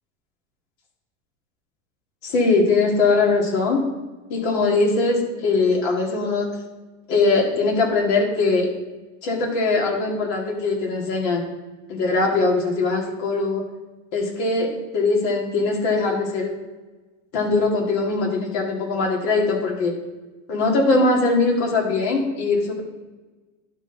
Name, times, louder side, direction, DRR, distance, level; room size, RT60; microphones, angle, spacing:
voice 1, 2.2-3.8 4.3-6.5 7.1-8.7 9.2-11.4 11.9-13.7 14.1-16.5 17.3-19.9 20.5-22.8, left 3 dB, 55° left, 0 dB, 2.2 m, -21 dB
11.0 x 4.5 x 3.9 m, 1.2 s
supercardioid pair, 155°, 38 cm